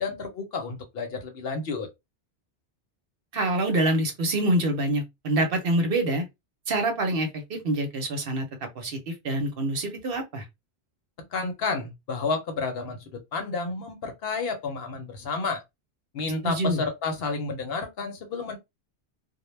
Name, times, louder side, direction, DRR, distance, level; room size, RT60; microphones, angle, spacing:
voice 1, 0.0-1.9 11.3-15.6 16.1-18.6, left 4 dB, 60° left, 0.8 m, -31 dB
voice 2, 3.3-6.2 6.7-8.5 8.7-10.4 16.4-16.8, right 1 dB, 60° right, 0.8 m, -26 dB
2.1 x 2.1 x 3.1 m
omnidirectional pair, 1.2 m